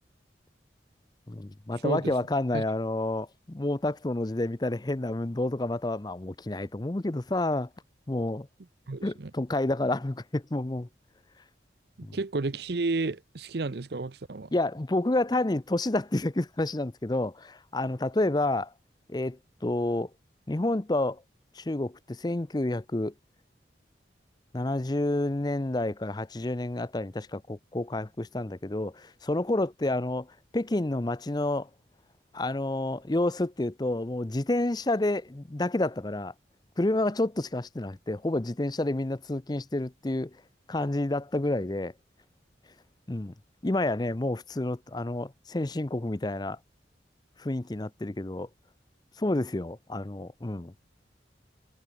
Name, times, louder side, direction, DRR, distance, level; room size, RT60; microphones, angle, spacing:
voice 1, 1.3-7.7 8.1-8.5 9.0-10.9 12.0-12.2 14.5-18.7 19.1-20.1 20.5-21.2 21.5-23.1 24.5-30.3 30.5-31.7 32.3-36.3 36.8-40.3 40.7-41.9 43.1-43.3 43.6-46.6 47.4-48.5 49.2-50.7, left 2 dB, 20° left, 0.6 m, -29 dB
voice 2, 1.8-2.1 2.5-2.6 8.9-9.3 12.0-14.5, right 3 dB, 60° right, 0.7 m, -32 dB
head